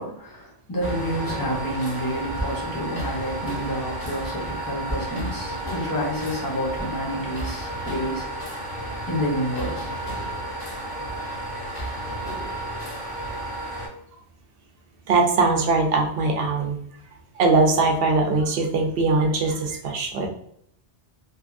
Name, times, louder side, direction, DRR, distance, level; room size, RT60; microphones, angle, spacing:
voice 1, 0.0-8.3 9.1-9.9, equal, 20° left, -4 dB, 0.7 m, -29 dB
sound 1, 0.8-13.9, right 1 dB, 45° left, 1.0 m, -32 dB
voice 2, 5.3-5.6 9.7-9.9 15.1-16.8 17.3-20.3, right 3 dB, 65° right, 2 dB, 0.7 m, -21 dB
2.8 x 2.4 x 2.5 m, 0.70 s
omnidirectional pair, 1.2 m